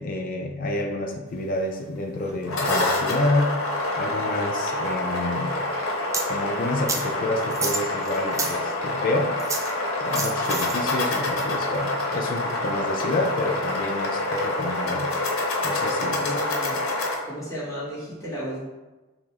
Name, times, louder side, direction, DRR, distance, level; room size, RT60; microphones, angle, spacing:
voice 1, 0.0-3.6 4.0-5.5 6.3-9.4 10.0-15.1 15.6-16.4, left 2 dB, 45° left, 3 dB, 0.4 m, -28 dB
sound 1, 2.3-17.2, left 2 dB, 80° left, 0.8 m, -27 dB
sound 2, 6.1-6.3 6.9-7.0 7.5-8.6 9.4-9.7 10.1-10.8, right 4 dB, 15° right, 0.3 m, -29 dB
voice 2, 16.2-16.8 17.2-18.6, equal, 15° left, -9 dB, 1.4 m, -33 dB
6.0 x 2.1 x 3.5 m, 1.1 s
head